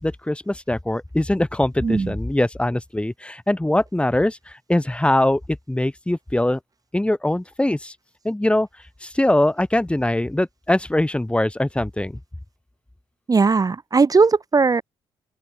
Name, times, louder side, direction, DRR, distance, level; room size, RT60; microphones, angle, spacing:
voice 1, 0.0-5.4 5.7-6.6 6.9-7.9 8.2-8.7 9.0-12.2, left 1 dB, 10° left, 5.3 m, -22 dB
voice 2, 1.8-2.2 13.3-14.8, right 4 dB, 30° right, 2.4 m, -18 dB
open air
figure-of-eight pair, 45°, 13 cm